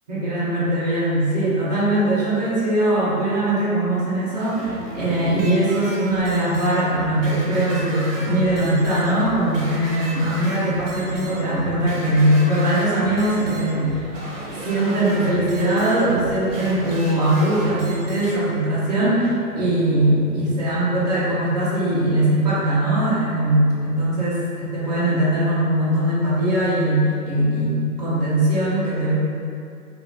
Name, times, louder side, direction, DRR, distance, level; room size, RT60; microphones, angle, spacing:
voice 1, 0.1-14.0 14.6-29.1, right 1 dB, 25° right, -9 dB, 0.8 m, -21 dB
sound 1, 4.4-18.4, right 1 dB, 55° right, 1.1 m, -35 dB
3.8 x 2.6 x 3.7 m, 2.4 s
hypercardioid pair, 160°, 47 cm